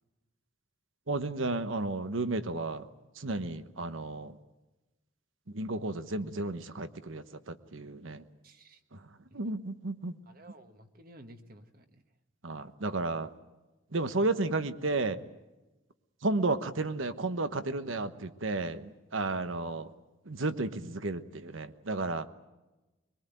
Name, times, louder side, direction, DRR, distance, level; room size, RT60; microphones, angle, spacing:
voice 1, 1.1-2.9 3.1-4.4 5.5-8.2 8.9-10.1 12.4-13.3 13.9-15.2 16.2-19.9 20.2-22.3, right 2 dB, 80° right, 11 dB, 1.2 m, -33 dB
voice 2, 8.4-8.8 9.3-9.4 10.3-12.0 19.5-19.6, right 1 dB, 45° right, 7 dB, 1.5 m, -54 dB
22.5 x 22.5 x 9.2 m, 1.1 s
head